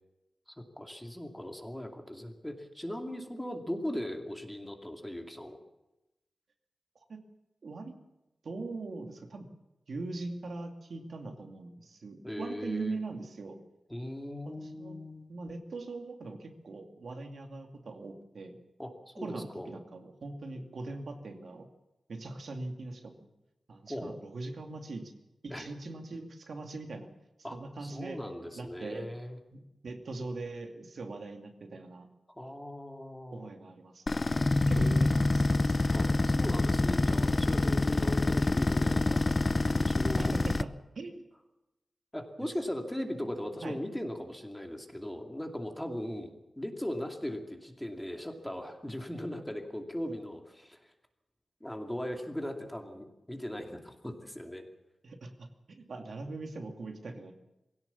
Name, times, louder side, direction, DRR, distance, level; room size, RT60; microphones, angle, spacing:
voice 1, 0.6-5.6 12.2-13.0 13.9-15.3 18.8-19.7 23.9-24.2 25.5-25.7 27.4-29.4 32.3-33.5 35.9-40.4 42.1-50.9 51.6-54.6, left 1 dB, 5° left, 3 dB, 2.5 m, -39 dB
voice 2, 7.6-7.9 8.4-9.5 9.9-13.6 14.6-15.0 15.3-18.6 19.2-21.7 22.1-23.1 23.7-25.1 25.4-27.1 27.5-28.2 28.6-29.1 29.5-32.1 33.3-34.3 34.7-36.0 40.2-40.7 40.9-41.3 43.6-43.8 55.0-57.3, right 3 dB, 65° right, 4 dB, 2.6 m, -41 dB
sound 1, 34.1-40.6, left 2 dB, 30° left, 0.7 m, -26 dB
22.0 x 17.0 x 7.2 m, 0.96 s
wide cardioid pair, 135°, 0 cm